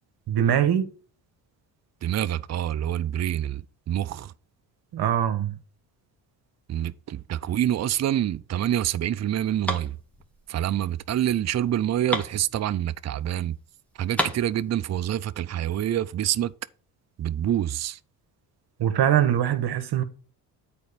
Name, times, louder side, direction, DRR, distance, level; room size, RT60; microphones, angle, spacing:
voice 1, 0.3-0.9 4.9-5.6 18.8-20.0, right 10 dB, 60° right, 1.3 m, -22 dB
voice 2, 2.0-4.3 6.7-10.0 10.5-13.6 14.0-16.5 17.2-18.0, right 11 dB, 40° right, 0.5 m, -26 dB
sound 1, 8.7-13.2 13.5-13.6 13.9-15.1, equal, 5° left, 1.9 m, -34 dB
8.3 x 4.4 x 6.8 m
supercardioid pair, 70°, 44 cm